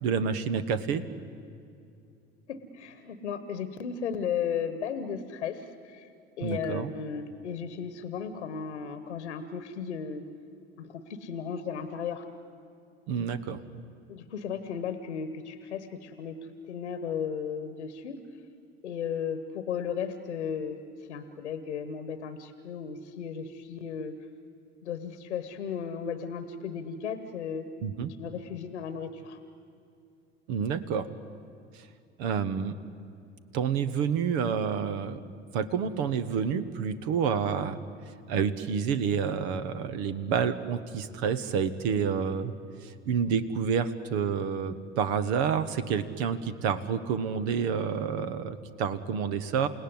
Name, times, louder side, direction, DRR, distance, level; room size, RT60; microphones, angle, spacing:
voice 1, 0.0-1.0 6.4-6.9 13.1-13.6 27.8-28.1 30.5-31.1 32.2-32.7 33.5-35.2 35.5-37.8 38.3-42.5 42.8-49.7, right 6 dB, 65° right, 13 dB, 1.4 m, -29 dB
voice 2, 2.5-6.1 6.4-10.3 10.8-12.3 14.1-18.2 18.8-20.8 21.1-24.2 24.8-27.7 28.2-29.4, left 7 dB, 85° left, 11 dB, 1.2 m, -35 dB
29.0 x 17.5 x 9.6 m, 2.5 s
hypercardioid pair, 65°, 34 cm